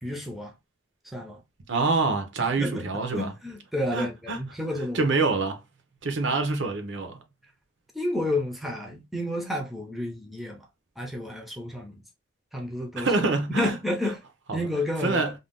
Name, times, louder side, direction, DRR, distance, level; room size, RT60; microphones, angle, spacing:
voice 1, 0.0-0.5 1.0-1.4 2.4-5.1 7.9-10.6 11.0-12.0 12.5-13.1 13.5-14.2 14.5-15.2, left 1 dB, ahead, 0.5 m, -31 dB
voice 2, 1.7-3.3 3.9-4.4 4.9-5.6 6.0-7.2 13.0-13.7 14.5-14.7 15.0-15.3, right 3 dB, 70° right, 0.6 m, -26 dB
2.6 x 2.2 x 3.4 m
head